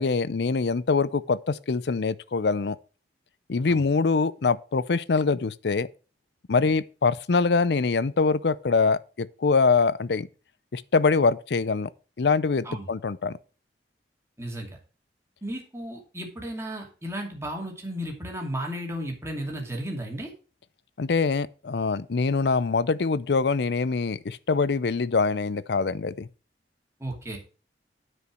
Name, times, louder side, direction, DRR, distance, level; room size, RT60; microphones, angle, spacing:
voice 1, 0.0-2.8 3.5-5.9 6.5-10.3 10.7-11.9 12.2-13.3 21.0-26.3, left 4 dB, 65° left, 0.5 m, -24 dB
voice 2, 14.4-14.8 15.4-20.3 27.0-27.4, equal, 15° right, 2.6 m, -34 dB
9.8 x 5.2 x 6.2 m
head